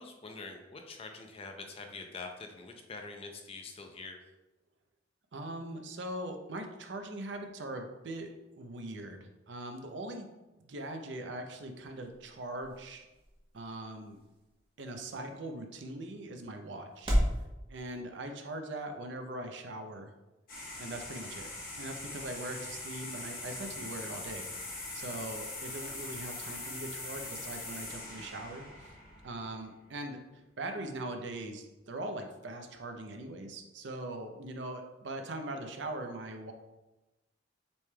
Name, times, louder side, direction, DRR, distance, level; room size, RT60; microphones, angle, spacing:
voice 1, 0.0-4.2, left 3 dB, 30° left, 3 dB, 0.5 m, -45 dB
voice 2, 5.3-8.3 8.6-10.3 10.6-13.1 13.5-14.2 14.8-17.1 17.7-20.1 20.8-21.5 21.8-24.5 24.9-28.9 29.2-30.2 30.6-36.5, right 1 dB, 65° right, 5 dB, 0.6 m, -41 dB
sound 1, 11.2-17.4, equal, 30° right, 0.9 m, -37 dB
sound 2, 20.5-29.7, left 2 dB, 50° left, 1.2 m, -42 dB
6.9 x 3.2 x 2.2 m, 1.0 s
head